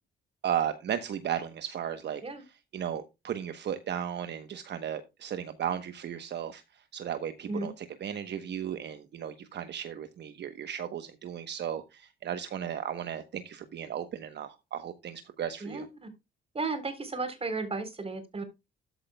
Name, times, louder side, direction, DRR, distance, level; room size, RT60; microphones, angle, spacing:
voice 1, 0.4-2.2 2.7-6.6 6.9-15.9, right 9 dB, 60° right, 10 dB, 1.1 m, -35 dB
voice 2, 15.6-16.1 16.5-18.4, right 3 dB, 30° right, 9 dB, 3.8 m, -34 dB
13.5 x 8.1 x 2.3 m, 0.24 s
cardioid pair, 90°, 20 cm